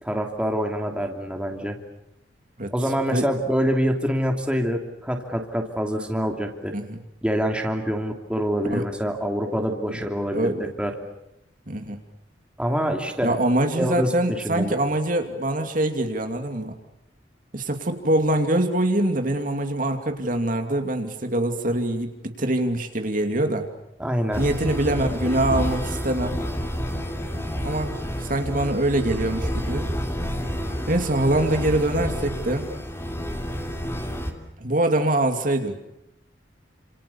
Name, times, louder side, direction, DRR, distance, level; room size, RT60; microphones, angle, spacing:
voice 1, 0.0-1.8 2.7-6.7 7.2-10.5 10.8-10.9 12.6-13.4 13.7-14.7 24.0-24.4, equal, 5° right, 3 dB, 2.9 m, -25 dB
voice 2, 11.7-12.0 13.2-16.7 17.5-23.6 24.4-26.4 27.6-27.9 28.2-29.8 30.9-32.7 34.6-35.8, right 1 dB, 45° right, 5 dB, 2.7 m, -24 dB
sound 1, 24.3-34.3, equal, 15° left, 3.1 m, -29 dB
29.5 x 27.5 x 7.2 m, 0.81 s
head